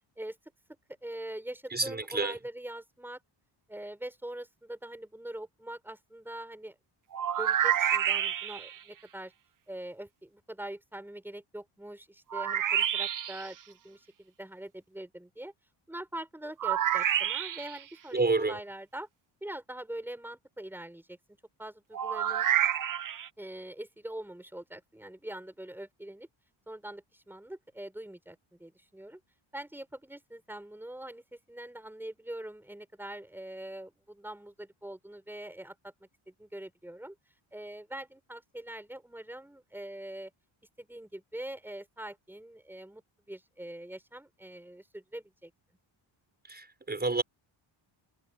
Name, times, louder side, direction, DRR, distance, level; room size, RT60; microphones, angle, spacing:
voice 1, 1.0-3.2 3.7-6.7 7.4-9.3 9.7-15.5 15.9-19.1 19.4-21.2 21.6-22.5 23.4-26.3 26.7-29.2 29.5-35.9 36.3-37.1 37.5-40.3 40.8-43.0 43.3-45.5, right 1 dB, 5° right, 6.7 m, -43 dB
voice 2, 1.7-2.4 18.1-18.6 46.5-47.2, right 3 dB, 20° right, 6.3 m, -29 dB
sound 1, 7.1-8.8 12.3-13.5 16.6-17.8 21.9-23.3, right 10 dB, 40° right, 0.8 m, -28 dB
cardioid pair, 140°, 48 cm